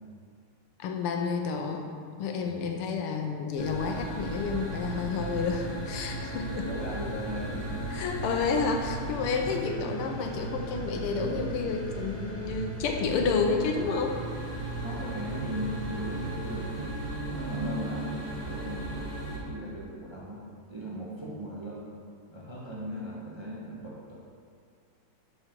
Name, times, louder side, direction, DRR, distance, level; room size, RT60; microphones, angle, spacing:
voice 1, 0.8-1.9 2.2-6.7 7.9-14.2 17.6-17.9, left 5 dB, 90° left, 3 dB, 1.7 m, -30 dB
sound 1, 3.6-19.4, right 2 dB, 25° left, 2.2 m, -36 dB
voice 2, 6.7-8.1 14.8-20.4 20.7-21.8 22.3-24.1, equal, 20° right, -5 dB, 0.9 m, -38 dB
11.5 x 4.4 x 4.5 m, 2.1 s
omnidirectional pair, 2.4 m